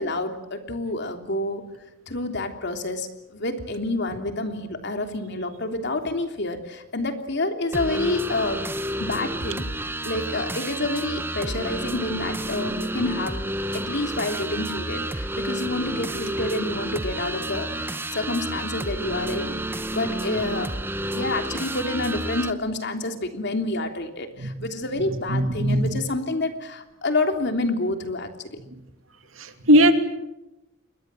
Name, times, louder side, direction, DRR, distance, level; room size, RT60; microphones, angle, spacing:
voice 1, 0.0-1.6 2.1-8.6 9.0-13.4 13.7-19.6 19.9-20.7 21.0-28.3, left 2 dB, 60° left, 6 dB, 3.2 m, -28 dB
sound 1, 7.7-22.5, right 1 dB, 10° right, 1.0 m, -30 dB
voice 2, 25.3-26.0 29.4-29.9, equal, 80° right, 7 dB, 2.8 m, -19 dB
28.0 x 22.0 x 7.7 m, 0.93 s
head